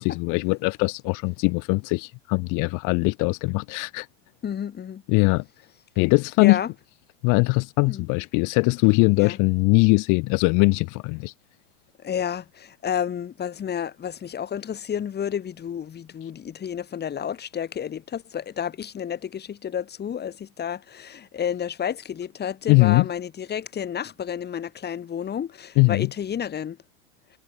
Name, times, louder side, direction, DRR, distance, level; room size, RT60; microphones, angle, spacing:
voice 1, 0.0-4.1 5.1-5.4 6.0-6.6 7.2-11.3 22.7-23.1 25.8-26.1, left 30 dB, 50° left, 5.7 m, -21 dB
voice 2, 4.4-5.0 6.4-6.7 7.9-8.1 9.2-9.4 12.0-26.8, left 8 dB, 25° left, 6.2 m, -31 dB
hypercardioid pair, 110°, 38 cm